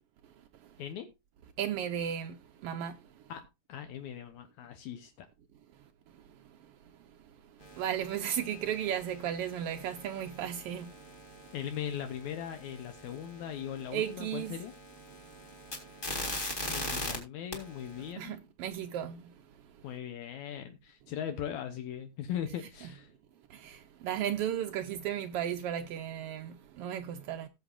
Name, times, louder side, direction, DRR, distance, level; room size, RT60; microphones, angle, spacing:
voice 1, 1.6-2.3 2.6-2.9 7.8-10.9 13.9-14.5 18.2-19.3 23.5-27.5, right 10 dB, 85° right, 1.3 m, -34 dB
voice 2, 3.3-5.3 11.5-14.7 16.7-18.4 19.8-23.1, left 9 dB, 75° left, 2.2 m, -39 dB
sound 1, 7.6-17.2 17.5-18.1, left 1 dB, 20° left, 1.8 m, -42 dB
17.5 x 7.1 x 2.4 m
omnidirectional pair, 3.4 m